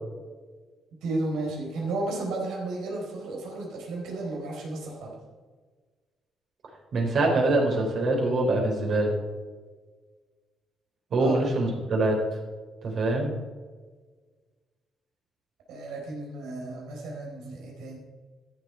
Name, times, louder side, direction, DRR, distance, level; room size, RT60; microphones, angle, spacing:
voice 1, 1.0-5.1 11.2-11.4 15.7-18.0, right 2 dB, 90° right, -1 dB, 4.2 m, -33 dB
voice 2, 6.9-9.1 11.1-12.2 12.8-13.3, right 2 dB, 60° right, 0 dB, 3.9 m, -24 dB
14.0 x 7.9 x 4.5 m, 1.4 s
cardioid pair, 90°, 0 cm